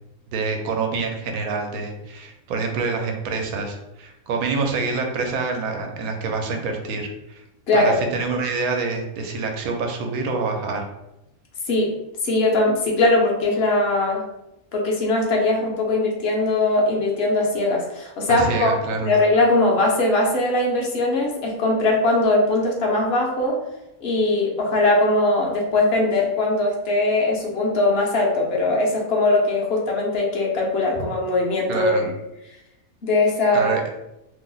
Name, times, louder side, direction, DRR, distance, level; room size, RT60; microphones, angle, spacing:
voice 1, 0.3-7.4 7.7-10.9 18.3-19.1 31.7-32.0 33.5-33.8, right 4 dB, 85° right, 3 dB, 1.1 m, -26 dB
voice 2, 12.2-14.2 14.7-18.7 19.0-23.6 24.0-32.1 33.0-33.7, left 2 dB, 55° left, -1 dB, 0.8 m, -20 dB
2.8 x 2.0 x 3.7 m, 0.88 s
omnidirectional pair, 1.5 m